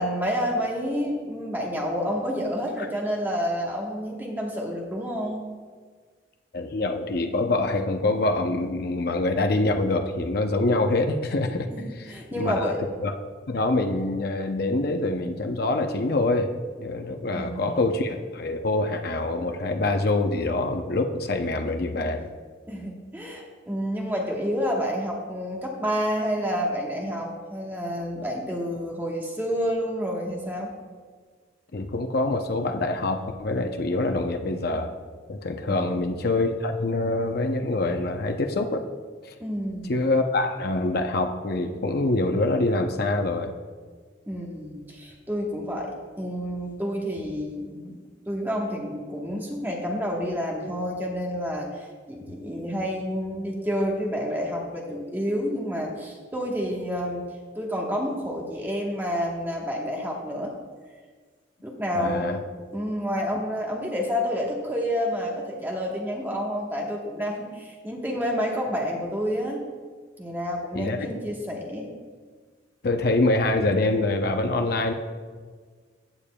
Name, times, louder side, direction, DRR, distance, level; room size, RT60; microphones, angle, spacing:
voice 1, 0.0-5.4 11.7-12.8 17.3-17.7 22.7-30.7 35.8-36.0 39.4-40.0 44.3-48.0 48.3-57.2 57.5-60.5 61.6-62.4 62.7-69.6 70.2-71.9, equal, 10° right, -1 dB, 1.2 m, -29 dB
voice 2, 6.5-11.7 12.4-12.7 13.0-13.1 13.5-16.5 16.8-22.3 31.7-34.9 35.3-38.8 39.8-43.5 52.3-52.4 61.9-62.4 70.7-71.0 72.8-74.9, left 2 dB, 55° left, 5 dB, 0.6 m, -25 dB
16.0 x 6.8 x 2.3 m, 1.5 s
head